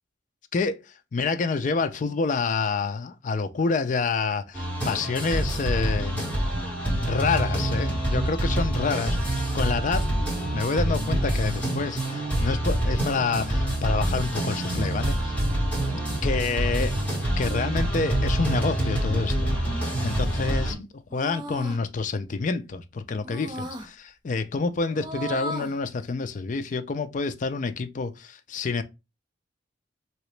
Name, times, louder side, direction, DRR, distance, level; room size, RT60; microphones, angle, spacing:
voice 1, 0.5-0.8 1.1-6.2 7.0-10.1 10.5-15.4 16.2-16.9 17.4-19.6 20.0-20.8 21.1-28.8, left 4 dB, 40° left, 0.3 m, -28 dB
sound 1, 4.5-20.7, right 1 dB, 10° left, 1.7 m, -26 dB
sound 2, 19.7-20.2 21.1-21.8 23.2-23.9 24.9-25.8, right 1 dB, 25° right, 0.6 m, -36 dB
3.0 x 2.9 x 3.1 m
head